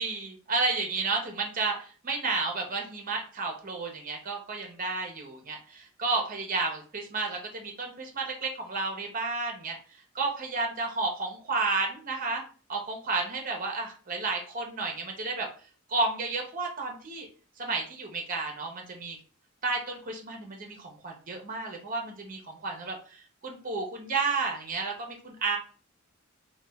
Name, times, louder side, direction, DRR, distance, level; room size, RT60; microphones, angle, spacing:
voice 1, 0.0-9.8 10.1-12.4 12.7-15.5 15.9-17.3 17.6-19.2 19.6-23.2 23.4-25.6, right 3 dB, 40° right, 1 dB, 0.6 m, -32 dB
3.0 x 2.2 x 2.2 m, 0.39 s
head